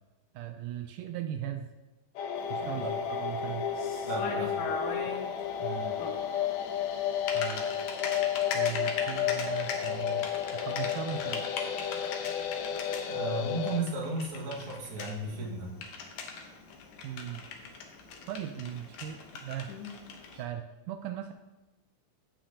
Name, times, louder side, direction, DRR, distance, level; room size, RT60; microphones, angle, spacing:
voice 1, 0.3-1.7 2.5-3.7 5.6-6.0 7.3-7.7 8.5-10.3 10.5-11.5 17.0-17.4 18.3-19.8 20.3-21.3, right 10 dB, 85° right, 6 dB, 1.8 m, -38 dB
sound 1, 2.2-13.8, left 9 dB, 90° left, 2.4 m, -32 dB
Typing, 2.4-20.4, left 5 dB, 65° left, 2.0 m, -41 dB
voice 2, 4.0-4.5 13.1-15.7, right 2 dB, 45° right, -3 dB, 2.2 m, -34 dB
16.5 x 5.9 x 2.8 m, 1.1 s
omnidirectional pair, 4.2 m